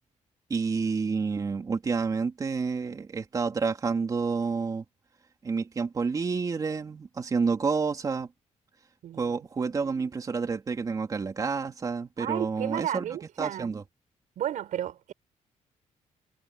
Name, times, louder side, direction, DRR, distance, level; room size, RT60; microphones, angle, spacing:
voice 1, 0.5-4.8 5.4-8.3 9.1-13.1 13.4-13.8, right 5 dB, 25° right, 3.3 m, -29 dB
voice 2, 9.0-9.4 12.2-13.7 14.4-15.1, right 11 dB, 75° right, 4.7 m, -33 dB
cardioid pair, 175°, 13 cm